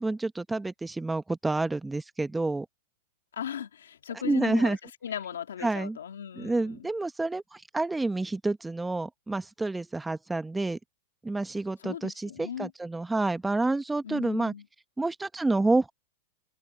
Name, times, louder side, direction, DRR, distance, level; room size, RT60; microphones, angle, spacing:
voice 1, 0.0-2.7 4.2-4.8 5.6-6.0 6.4-10.8 11.2-14.5 15.0-15.9, right 2 dB, 10° right, 1.0 m, -28 dB
voice 2, 3.3-4.8 5.0-6.9 11.8-12.7 14.0-14.7, left 9 dB, 90° left, 2.5 m, -37 dB
open air
hypercardioid pair, 125°, 0 cm